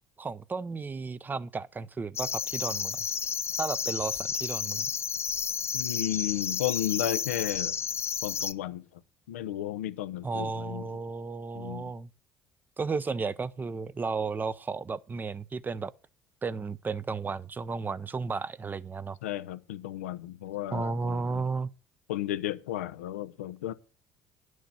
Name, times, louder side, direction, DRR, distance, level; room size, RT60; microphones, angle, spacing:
voice 1, 0.2-3.1 3.6-4.9 10.2-12.1 12.8-15.9 16.4-19.2 20.7-21.7, right 4 dB, 25° right, 0.7 m, -33 dB
sound 1, 2.2-8.5, left 7 dB, 35° left, 0.6 m, -32 dB
voice 2, 5.7-7.7 8.2-8.8 9.3-10.8 11.5-11.9 19.2-21.4 22.1-23.7, left 12 dB, 90° left, 0.6 m, -33 dB
10.0 x 6.4 x 7.0 m
hypercardioid pair, 70°, 7 cm